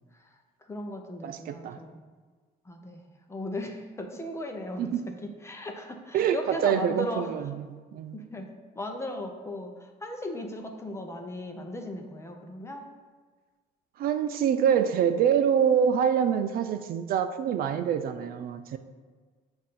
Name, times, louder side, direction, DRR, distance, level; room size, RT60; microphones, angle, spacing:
voice 1, 0.6-2.0 2.7-4.8 5.2-7.3 8.1-8.5 8.7-12.8, left 1 dB, 15° left, 3 dB, 0.7 m, -37 dB
voice 2, 1.2-1.8 4.8-5.0 6.1-7.7 7.9-8.2 14.0-18.8, right 8 dB, 60° right, 9 dB, 0.4 m, -25 dB
7.3 x 2.6 x 5.6 m, 1.4 s
cardioid pair, 110°, 17 cm